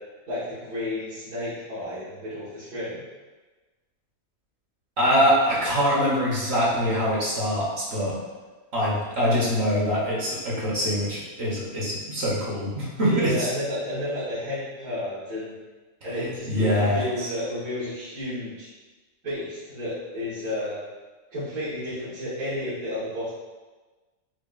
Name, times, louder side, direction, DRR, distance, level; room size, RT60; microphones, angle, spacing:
voice 1, 0.3-3.0 13.0-15.5 16.0-18.7 19.2-20.8 21.3-23.3, left 1 dB, 70° right, -16 dB, 2.0 m, -31 dB
voice 2, 5.0-8.2 8.7-13.5 16.1-17.3, equal, 50° right, -6 dB, 1.1 m, -24 dB
6.0 x 2.3 x 2.5 m, 1.2 s
omnidirectional pair, 1.5 m